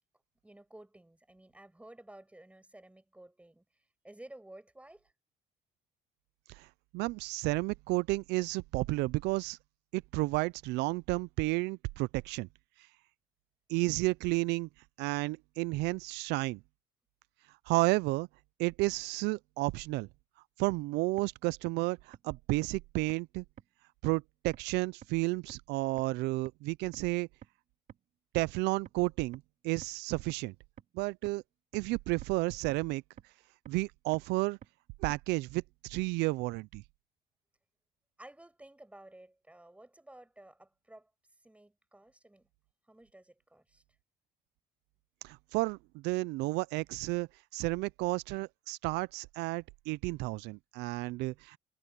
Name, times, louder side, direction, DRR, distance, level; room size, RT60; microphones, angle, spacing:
voice 1, 0.4-3.6 4.0-5.1 38.2-41.1 41.4-42.5 42.9-43.8, right 1 dB, 5° right, 6.4 m, -54 dB
voice 2, 6.9-9.6 9.9-12.5 13.7-14.7 15.0-16.6 17.7-18.3 18.6-20.1 20.6-23.4 24.0-27.3 28.3-30.5 30.9-31.4 31.7-33.0 33.7-34.6 35.0-36.8 45.2-51.6, right 22 dB, 90° right, 0.4 m, -32 dB
sound 1, 20.7-20.8 21.2-21.3 21.7-21.8 22.1-22.2 22.6-22.7 23.1-23.2 23.6-23.7 24.1-24.2 24.5-24.6 25.0-25.1 25.5-25.6 26.0-26.1 26.5-26.6 26.9-27.0 27.4-27.5 27.9-28.0 28.4-28.5 28.9-29.0 29.3-29.4 29.8-29.9 30.3-30.4 30.8-30.9 31.3-31.4 31.7-31.8 32.2-32.3 32.7-32.8 33.2-33.3 33.7-33.8 34.1-34.2 34.6-34.7 35.1-35.2 35.6-35.7, right 9 dB, 55° right, 3.9 m, -49 dB
cardioid pair, 110°, 17 cm